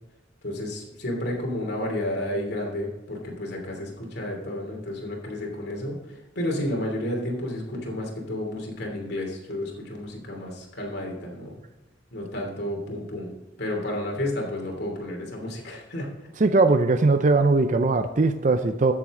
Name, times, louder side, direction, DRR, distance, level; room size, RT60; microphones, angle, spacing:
voice 1, 0.4-6.0 6.3-11.6 12.1-13.3 13.6-16.3, left 1 dB, 55° left, 0 dB, 2.9 m, -31 dB
voice 2, 16.4-18.9, right 3 dB, 40° right, 8 dB, 0.5 m, -20 dB
13.5 x 7.5 x 3.8 m, 1.1 s
head